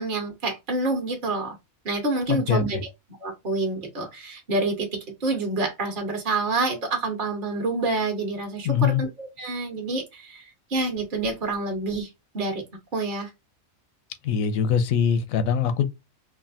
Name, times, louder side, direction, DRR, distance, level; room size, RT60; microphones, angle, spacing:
voice 1, 0.0-1.6 1.8-2.9 3.2-12.1 12.3-12.6 12.9-13.3, right 2 dB, 45° right, 0.9 m, -27 dB
voice 2, 2.3-2.8 8.6-9.0 14.2-15.9, left 7 dB, 80° left, 1.0 m, -23 dB
3.3 x 2.4 x 2.4 m
omnidirectional pair, 1.4 m